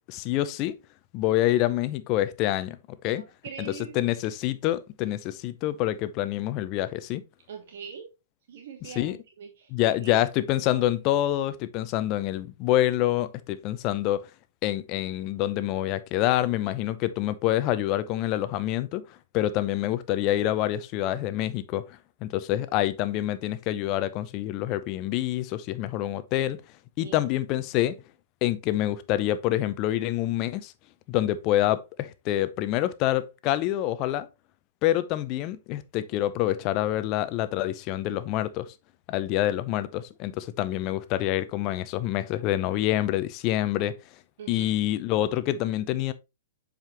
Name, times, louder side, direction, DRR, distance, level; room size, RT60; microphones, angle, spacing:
voice 1, 0.1-0.8 1.1-2.8 3.0-3.2 3.6-7.2 8.8-9.2 9.7-14.2 14.6-19.0 19.3-26.6 27.0-28.0 28.4-30.7 31.1-34.3 34.8-38.7 39.1-43.9 44.5-46.1, left 13 dB, 40° left, 0.7 m, -26 dB
voice 2, 3.1-3.9 7.5-8.1 8.5-9.7 10.0-10.2 27.0-27.3 44.4-44.7, right 7 dB, 60° right, 1.2 m, -42 dB
7.3 x 5.1 x 2.9 m
figure-of-eight pair, 115°, 0 cm